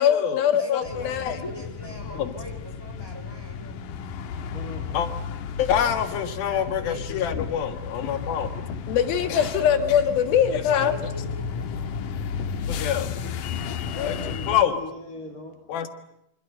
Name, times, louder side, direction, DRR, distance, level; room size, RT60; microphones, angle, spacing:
voice 1, 0.0-1.4 2.2-2.3 4.9-5.1 5.6-11.0 12.7-13.1 13.9-14.8 15.7-15.9, left 9 dB, 85° left, 9 dB, 3.6 m, -24 dB
voice 2, 0.6-3.8 6.4-7.2 9.3-10.1 10.5-11.7, equal, 5° right, 4 dB, 5.8 m, -41 dB
sound 1, 0.8-14.6, left 6 dB, 70° left, 2.8 m, -33 dB
voice 3, 4.5-4.9 13.9-15.6, left 2 dB, 25° left, 3 dB, 2.9 m, -39 dB
26.5 x 26.5 x 7.9 m, 0.78 s
omnidirectional pair, 4.1 m